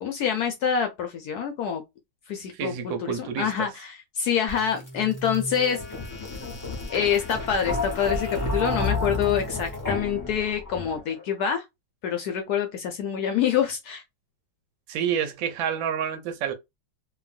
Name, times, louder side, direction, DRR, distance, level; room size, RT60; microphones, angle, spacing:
voice 1, 0.0-1.8 2.3-5.8 6.9-11.6 12.0-14.0, left 8 dB, 70° left, 0.9 m, -26 dB
voice 2, 2.5-3.7 14.9-16.5, right 8 dB, 80° right, 1.4 m, -29 dB
sound 1, 4.5-11.2, left 3 dB, 20° left, 0.5 m, -31 dB
2.9 x 2.6 x 2.4 m
omnidirectional pair, 2.1 m